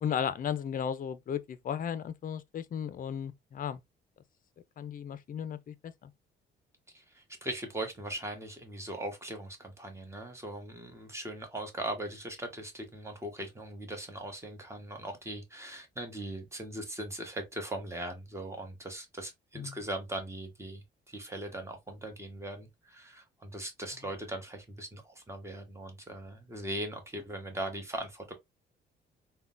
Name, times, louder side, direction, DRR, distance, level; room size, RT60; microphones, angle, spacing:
voice 1, 0.0-3.8 4.8-6.1 19.6-19.8, left 8 dB, 45° left, 0.5 m, -35 dB
voice 2, 6.9-28.3, right 1 dB, 15° right, 1.1 m, -40 dB
3.6 x 2.2 x 2.4 m
cardioid pair, 90°, 20 cm